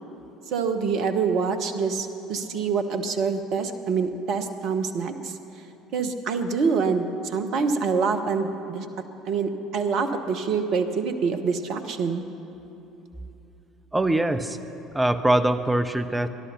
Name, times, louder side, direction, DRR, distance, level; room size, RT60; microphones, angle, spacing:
voice 1, 0.5-5.3 5.9-8.9 9.3-12.2, right 5 dB, 50° right, 8 dB, 1.1 m, -26 dB
voice 2, 13.9-14.6 14.9-16.3, right 1 dB, 10° right, 10 dB, 0.8 m, -22 dB
18.5 x 11.5 x 6.9 m, 2.9 s
figure-of-eight pair, 60°, 0 cm